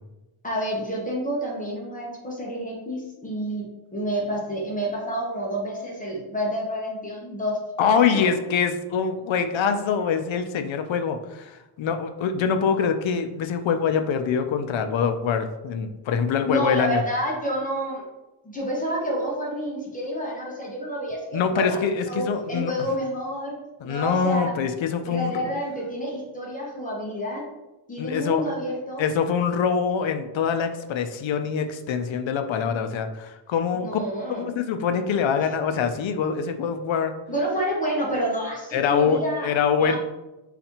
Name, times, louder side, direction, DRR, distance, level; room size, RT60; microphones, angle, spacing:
voice 1, 0.4-7.6 8.1-8.3 16.4-18.1 18.4-21.8 22.1-23.6 23.8-24.5 25.1-27.4 27.9-29.0 33.7-34.5 37.3-39.5 39.7-40.0, equal, 15° left, -4 dB, 0.9 m, -29 dB
voice 2, 7.8-17.0 21.3-22.7 23.8-25.4 28.0-28.4 29.0-34.0 34.3-37.1 38.7-40.0, left 6 dB, 65° left, 7 dB, 0.5 m, -24 dB
4.2 x 4.0 x 2.9 m, 1.0 s
wide cardioid pair, 180°, 50 cm